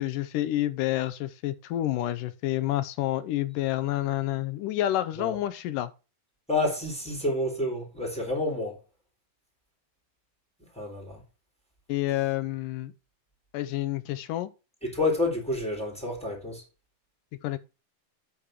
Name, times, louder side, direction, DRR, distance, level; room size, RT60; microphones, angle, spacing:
voice 1, 0.0-5.9 11.9-12.9 13.5-14.5 17.4-17.6, left 14 dB, 85° left, 2.4 m, -29 dB
voice 2, 6.5-8.8 10.7-11.2 14.8-16.6, left 2 dB, ahead, 3.5 m, -29 dB
8.7 x 5.3 x 5.9 m
omnidirectional pair, 3.7 m